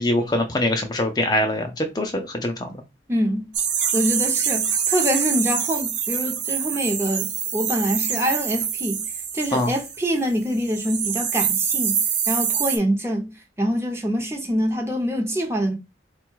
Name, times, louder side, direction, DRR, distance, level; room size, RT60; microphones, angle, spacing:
voice 1, 0.0-2.7 9.5-9.7, left 1 dB, 20° left, 0.4 m, -23 dB
voice 2, 3.1-3.5 3.9-9.0 9.3-12.0 12.3-15.8, equal, 15° right, 0.7 m, -25 dB
sound 1, 3.5-10.2 10.5-12.8, right 7 dB, 85° right, 0.8 m, -25 dB
3.7 x 2.3 x 4.5 m
head